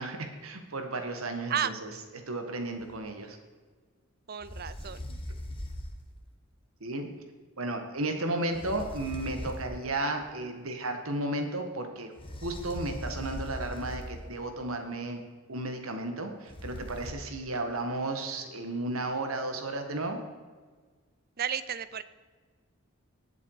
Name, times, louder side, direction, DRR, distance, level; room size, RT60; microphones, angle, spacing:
voice 1, 0.0-1.9 2.3-3.4 6.8-7.1 7.6-12.1 12.4-15.2 15.5-20.2, right 2 dB, 80° right, 5 dB, 1.9 m, -33 dB
sound 1, 2.8-3.0 4.4-6.1 8.5-9.9 12.2-14.4 16.5-17.1, left 1 dB, 25° left, 1.5 m, -40 dB
voice 2, 4.3-5.2 21.4-22.0, right 8 dB, 45° right, 15 dB, 0.6 m, -32 dB
20.0 x 7.2 x 5.0 m, 1.5 s
head